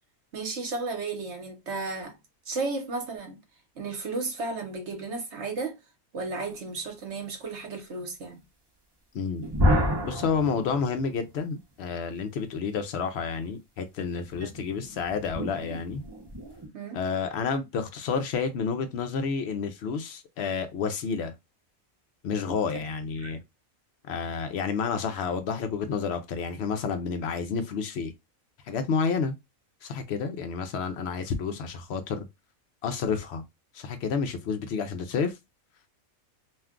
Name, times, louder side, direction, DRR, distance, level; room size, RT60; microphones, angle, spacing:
voice 1, 0.3-2.2 2.5-3.4 3.8-5.8 6.1-8.4 14.4-14.7 16.7-17.0 23.2-23.3, right 3 dB, 55° right, 1.0 m, -34 dB
voice 2, 9.1-9.5 10.0-16.0 16.9-21.3 22.2-23.4 24.1-28.1 28.7-29.3 29.8-32.3 32.8-33.4 33.7-35.3, left 5 dB, 65° left, 0.7 m, -30 dB
sound 1, 9.4-11.3 14.3-16.7, left 1 dB, 30° right, 0.5 m, -29 dB
2.5 x 2.3 x 3.5 m
omnidirectional pair, 1.5 m